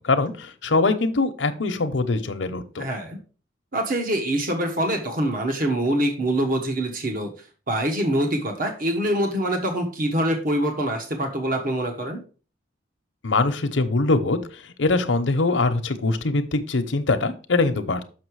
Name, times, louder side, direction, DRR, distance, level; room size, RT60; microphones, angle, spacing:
voice 1, 0.0-2.8 13.2-18.0, left 3 dB, 70° left, 7 dB, 0.9 m, -23 dB
voice 2, 2.8-3.2 3.7-7.3 7.7-12.2, right 1 dB, 45° right, 4 dB, 1.2 m, -24 dB
6.6 x 5.9 x 4.7 m, 0.38 s
head